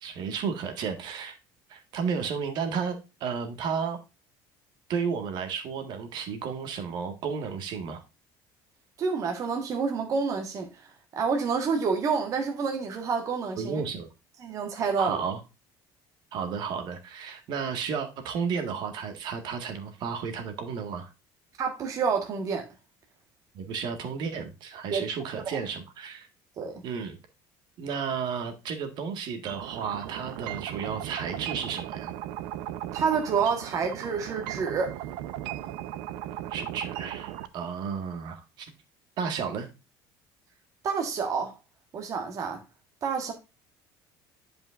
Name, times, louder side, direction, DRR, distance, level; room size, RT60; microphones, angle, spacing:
voice 1, 0.0-1.4 1.7-4.0 4.9-8.0 13.6-14.1 15.0-15.4 16.3-21.1 23.5-26.3 26.8-27.2 27.8-32.1 36.5-38.7 39.2-39.7, right 6 dB, 60° right, 1.7 m, -33 dB
voice 2, 9.0-10.7 11.1-13.8 14.4-15.2 21.6-22.7 24.9-25.1 25.5-25.6 26.6-26.8 32.9-35.0 40.8-41.5 41.9-42.6 43.0-43.3, right 5 dB, 40° right, 1.4 m, -28 dB
sound 1, 29.5-37.5, right 13 dB, 80° right, 0.7 m, -37 dB
10.5 x 5.2 x 2.5 m
cardioid pair, 135°, 9 cm